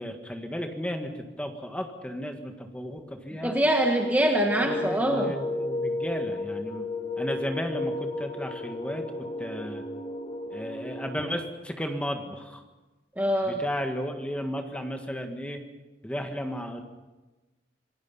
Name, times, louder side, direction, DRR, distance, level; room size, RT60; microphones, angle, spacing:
voice 1, 0.0-3.6 4.6-6.8 7.2-9.0 9.4-9.8 10.5-12.6 13.4-15.6 16.0-16.8, equal, 5° left, 4 dB, 1.7 m, -34 dB
voice 2, 3.4-5.3 13.2-13.6, right 1 dB, 10° right, 2 dB, 1.4 m, -24 dB
sound 1, 4.5-11.3, left 2 dB, 30° left, 2.3 m, -33 dB
27.5 x 18.5 x 5.6 m, 1.2 s
head